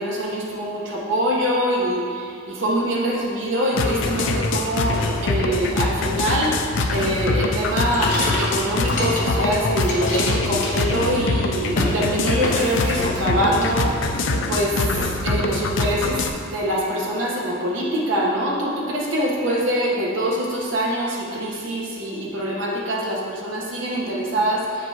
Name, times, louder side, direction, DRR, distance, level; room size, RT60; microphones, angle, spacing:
voice 1, 0.0-6.5 6.9-13.9 14.5-16.2 16.4-24.9, equal, 70° right, -4 dB, 1.2 m, -24 dB
sound 1, 3.7-16.3, left 3 dB, 65° left, 0.4 m, -24 dB
sound 2, 6.8-9.4 9.7-11.4 11.6-12.0 12.4-13.3 13.6-14.4, left 1 dB, 40° left, 1.1 m, -29 dB
7.7 x 5.2 x 2.9 m, 2.5 s
head